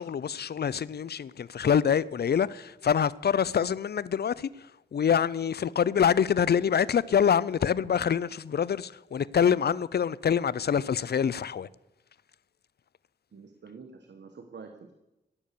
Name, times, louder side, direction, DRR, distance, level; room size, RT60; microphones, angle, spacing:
voice 1, 0.0-11.7, left 8 dB, 60° left, 0.5 m, -26 dB
voice 2, 13.3-15.0, right 5 dB, 65° right, 1.3 m, -47 dB
18.0 x 6.9 x 6.8 m
cardioid pair, 50°, 19 cm